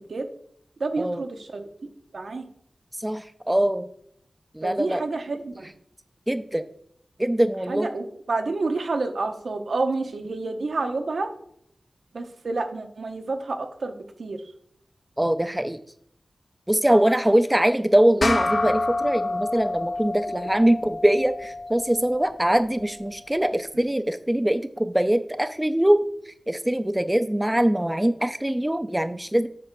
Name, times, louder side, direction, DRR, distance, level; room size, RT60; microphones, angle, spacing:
voice 1, 0.8-1.7 2.1-2.5 4.6-5.7 7.7-11.3 12.1-13.9 14.2-14.4, right 3 dB, 75° right, 6 dB, 0.9 m, -29 dB
voice 2, 3.0-3.9 4.6-5.0 6.3-6.6 7.2-7.9 15.2-15.8 16.7-26.0 26.5-29.5, right 1 dB, 10° right, 10 dB, 0.4 m, -22 dB
sound 1, 18.2-23.0, left 2 dB, 45° left, 0.5 m, -28 dB
8.5 x 3.2 x 6.0 m, 0.69 s
wide cardioid pair, 100°, 0 cm